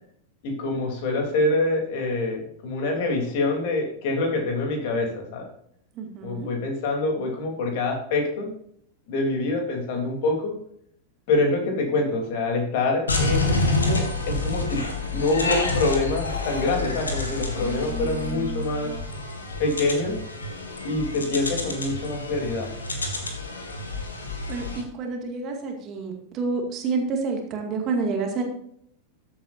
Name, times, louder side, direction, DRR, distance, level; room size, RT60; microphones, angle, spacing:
voice 1, 0.4-5.4 6.2-8.5 9.1-10.6 11.3-14.8 15.1-19.0 19.6-20.2 20.8-22.7, left 2 dB, 50° left, 2 dB, 3.3 m, -25 dB
voice 2, 6.0-6.5 17.6-18.9 24.5-28.4, right 4 dB, 35° right, 2 dB, 2.2 m, -29 dB
sound 1, 13.1-24.8, left 2 dB, 75° left, 1.9 m, -28 dB
14.0 x 8.4 x 2.7 m, 0.68 s
figure-of-eight pair, 90°, 0 cm